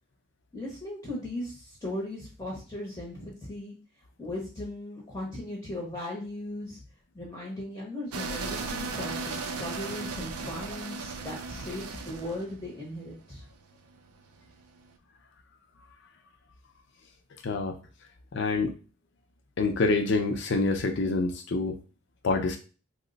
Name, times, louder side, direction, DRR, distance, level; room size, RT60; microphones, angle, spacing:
voice 1, 0.5-3.7 4.2-6.8 7.1-13.5, left 1 dB, 15° left, -3 dB, 0.7 m, -37 dB
sound 1, 8.1-14.9, right 4 dB, 90° right, 0.5 m, -36 dB
voice 2, 17.4-17.8 18.3-18.7 19.6-21.8 22.2-22.6, left 3 dB, 55° left, 5 dB, 0.5 m, -26 dB
2.9 x 2.0 x 3.9 m, 0.35 s
head